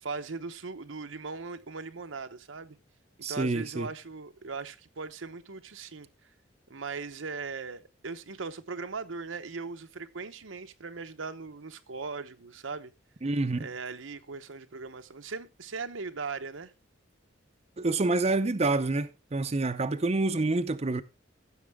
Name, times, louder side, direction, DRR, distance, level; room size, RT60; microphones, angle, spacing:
voice 1, 0.0-2.8 3.2-6.1 6.7-12.9 13.6-16.7, right 4 dB, 90° right, 0.9 m, -39 dB
voice 2, 3.2-3.9 13.2-13.7 17.8-21.0, right 2 dB, 35° right, 0.6 m, -27 dB
15.5 x 6.7 x 3.5 m
head